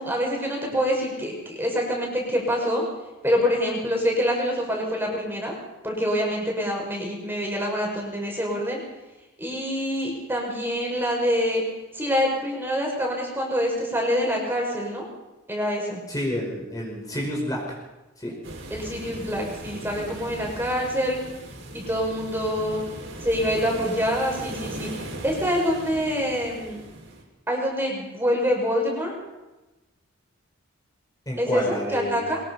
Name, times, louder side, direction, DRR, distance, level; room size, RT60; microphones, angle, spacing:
voice 1, 0.0-2.8 3.2-5.6 5.8-8.8 9.4-11.6 11.9-15.1 15.5-16.0 18.7-21.2 21.7-22.8 23.2-26.8 27.5-29.2 31.4-32.4, equal, 10° right, -1 dB, 5.8 m, -26 dB
voice 2, 16.1-17.8 18.2-18.3 31.3-32.2, equal, 15° left, -2 dB, 5.0 m, -29 dB
sound 1, 18.4-27.2, right 1 dB, 60° right, 5.9 m, -38 dB
23.5 x 22.0 x 5.6 m, 1.1 s
head